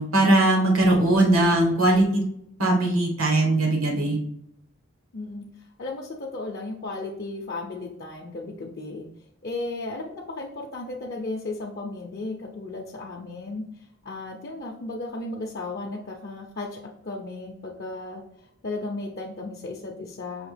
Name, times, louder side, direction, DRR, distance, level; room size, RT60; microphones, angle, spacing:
voice 1, 0.0-2.2 2.6-4.2, right 2 dB, 85° right, 0 dB, 1.3 m, -20 dB
voice 2, 5.1-5.4 5.8-9.1 9.4-13.6 14.0-18.2 18.6-20.5, left 2 dB, 50° left, -1 dB, 0.6 m, -34 dB
5.6 x 2.8 x 3.3 m, 0.74 s
head